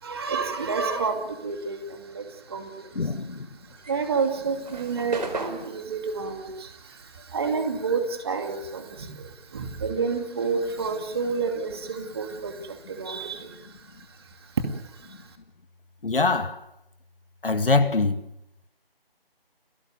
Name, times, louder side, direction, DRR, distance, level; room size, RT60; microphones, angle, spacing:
voice 1, 0.0-3.0 3.7-15.3, right 5 dB, 25° right, 2.5 m, -30 dB
voice 2, 2.9-3.5 16.0-16.6 17.4-18.2, left 3 dB, 65° left, 2.1 m, -23 dB
sound 1, 3.7-8.4 8.7-10.7, right 3 dB, 45° right, 4.7 m, -38 dB
29.5 x 18.5 x 7.8 m
figure-of-eight pair, 165°, 30 cm